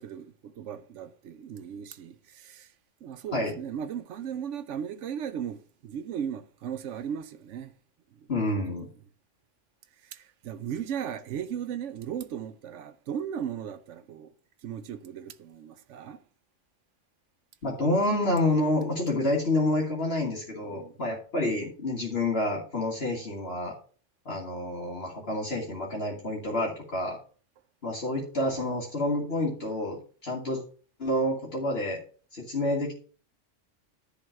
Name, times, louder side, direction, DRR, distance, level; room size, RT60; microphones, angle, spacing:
voice 1, 0.0-2.7 3.0-7.7 8.2-8.3 10.0-14.3 14.6-16.2 20.7-20.9, right 8 dB, 80° right, 1.0 m, -37 dB
voice 2, 8.3-8.9 17.6-23.8 24.3-27.2 27.8-30.6 31.0-32.0 32.3-32.9, left 1 dB, 55° left, 2.1 m, -28 dB
11.0 x 4.0 x 6.3 m
omnidirectional pair, 1.2 m